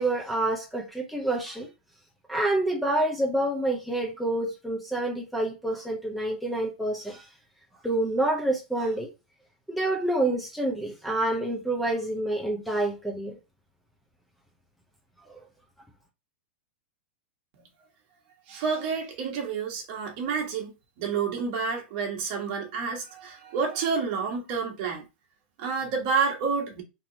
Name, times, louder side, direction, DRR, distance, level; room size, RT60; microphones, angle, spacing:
voice 1, 0.0-1.7 2.3-7.3 7.8-9.1 9.7-13.4 15.3-15.4, right 1 dB, ahead, 0.7 m, -27 dB
voice 2, 18.5-20.7 21.0-25.0 25.6-26.8, right 5 dB, 50° right, 1.4 m, -29 dB
3.8 x 2.9 x 2.8 m
hypercardioid pair, 130°, 6 cm